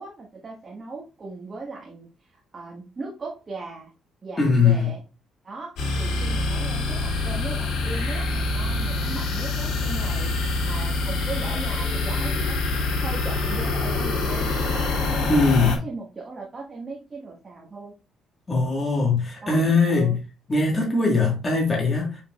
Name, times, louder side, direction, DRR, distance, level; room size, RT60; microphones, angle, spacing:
voice 1, 0.0-3.9 4.2-5.0 5.4-17.9 19.4-20.2, right 3 dB, 25° right, 1.6 m, -38 dB
voice 2, 4.4-4.9 15.3-15.8 18.5-20.2 20.5-22.2, left 4 dB, 20° left, 1.7 m, -21 dB
sound 1, 5.8-15.8, left 2 dB, 75° left, 2.8 m, -25 dB
6.6 x 5.9 x 2.4 m
cardioid pair, 155°, 0 cm